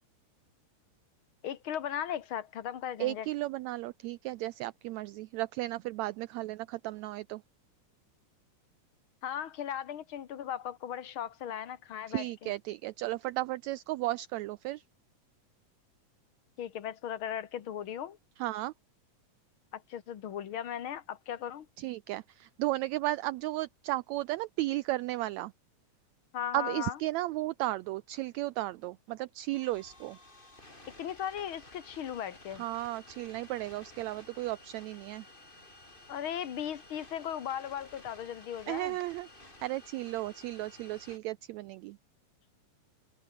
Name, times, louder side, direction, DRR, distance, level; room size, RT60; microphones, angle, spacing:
voice 1, 1.4-3.3 9.2-12.5 16.6-18.2 19.7-21.7 26.3-27.0 31.0-32.6 36.1-39.0, left 9 dB, 50° left, 1.8 m, -37 dB
voice 2, 3.0-7.4 12.1-14.8 18.4-18.7 21.8-25.5 26.5-30.2 32.6-35.2 38.7-39.3 39.6-42.0, right 17 dB, 85° right, 1.6 m, -34 dB
sound 1, 29.5-41.2, left 2 dB, 15° left, 4.3 m, -54 dB
omnidirectional pair, 3.7 m